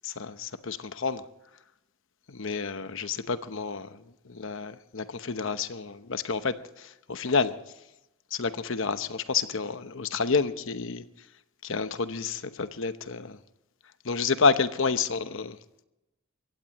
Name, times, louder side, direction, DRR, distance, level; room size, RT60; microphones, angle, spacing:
voice 1, 0.0-1.3 2.3-7.6 8.3-11.0 11.6-13.4 14.0-15.6, left 5 dB, 65° left, 0.9 m, -29 dB
22.5 x 16.5 x 3.1 m
head